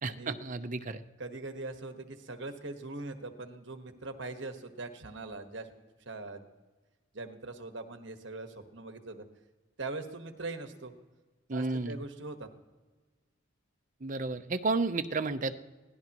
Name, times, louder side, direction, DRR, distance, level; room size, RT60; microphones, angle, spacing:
voice 1, 0.0-1.0 11.5-12.0 14.0-15.5, right 3 dB, 40° right, 9 dB, 0.7 m, -32 dB
voice 2, 1.2-5.7 6.0-6.5 7.1-9.2 9.8-10.9 11.5-12.5, right 2 dB, 65° right, 7 dB, 1.4 m, -41 dB
24.0 x 17.0 x 3.0 m, 1.3 s
head